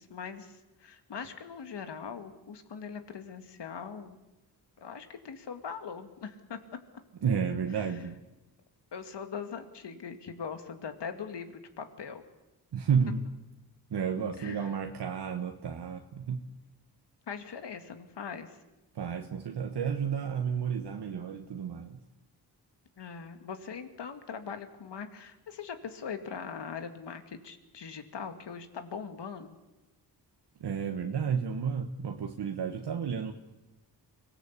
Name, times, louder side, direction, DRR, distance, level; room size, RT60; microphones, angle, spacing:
voice 1, 0.0-4.2 4.8-6.6 7.7-8.0 8.9-12.2 14.4-14.7 17.3-18.6 23.0-29.6, left 6 dB, 75° left, 8 dB, 2.3 m, -41 dB
voice 2, 7.2-8.2 12.7-13.3 13.9-16.5 18.9-22.0 30.6-33.3, right 7 dB, 70° right, 5 dB, 1.4 m, -31 dB
25.0 x 18.0 x 8.4 m, 1.0 s
cardioid pair, 75°, 42 cm